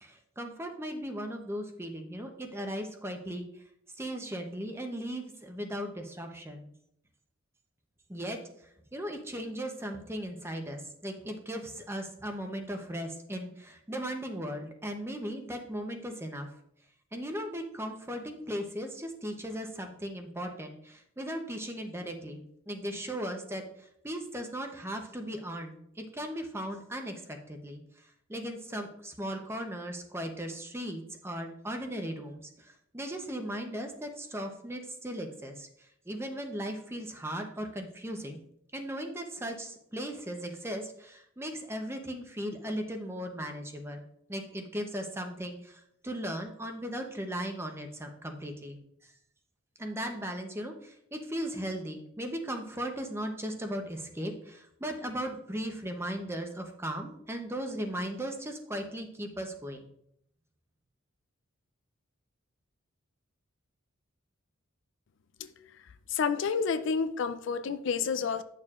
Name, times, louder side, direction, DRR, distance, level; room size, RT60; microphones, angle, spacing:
voice 1, 0.0-3.5 4.0-6.7 8.1-8.4 8.9-16.5 17.1-27.2 27.5-27.8 28.3-35.7 36.1-38.4 38.7-44.0 44.3-48.8 49.8-59.9, equal, 10° right, 4 dB, 0.7 m, -37 dB
voice 2, 66.1-68.4, left 5 dB, 60° left, 12 dB, 0.4 m, -29 dB
10.0 x 6.7 x 2.4 m, 0.72 s
head